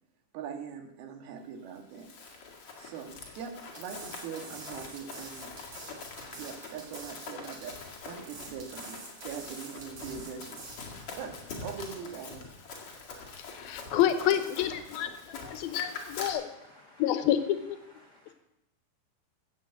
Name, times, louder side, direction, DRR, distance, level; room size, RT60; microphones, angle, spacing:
voice 1, 0.3-2.1 2.8-5.5 6.3-9.0 9.2-10.7 11.0-12.5, right 7 dB, 80° right, 5 dB, 3.5 m, -42 dB
Run, 1.7-16.3, left 4 dB, 45° left, 2.6 m, -44 dB
sound 1, 3.7-10.8, right 3 dB, 45° right, 4.0 m, -47 dB
voice 2, 13.5-16.5 17.0-17.6, left 11 dB, 80° left, 10 dB, 2.7 m, -28 dB
voice 3, 15.3-17.5 17.8-18.3, left 1 dB, 65° left, 1 dB, 1.0 m, -57 dB
15.5 x 8.2 x 7.8 m, 0.86 s
omnidirectional pair, 4.4 m